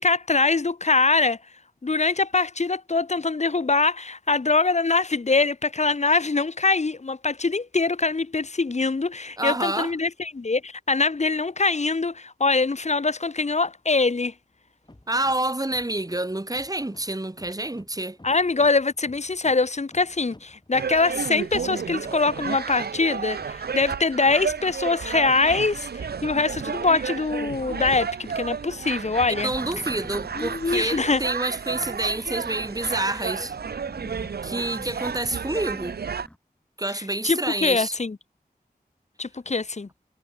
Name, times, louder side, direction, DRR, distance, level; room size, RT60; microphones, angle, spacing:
voice 1, 0.0-1.4 1.8-14.3 18.2-29.5 30.4-31.2 36.9-38.2 39.2-39.9, left 3 dB, 45° left, 0.6 m, -23 dB
voice 2, 9.4-9.9 15.1-18.2 29.4-33.5 34.4-36.0 36.8-37.9, right 1 dB, 20° right, 1.3 m, -28 dB
sound 1, 14.8-26.7, left 1 dB, 25° left, 2.3 m, -53 dB
sound 2, 20.7-36.3, right 6 dB, 80° right, 0.4 m, -32 dB
sound 3, 29.2-36.4, equal, 5° left, 1.2 m, -47 dB
wide cardioid pair, 55°, 16 cm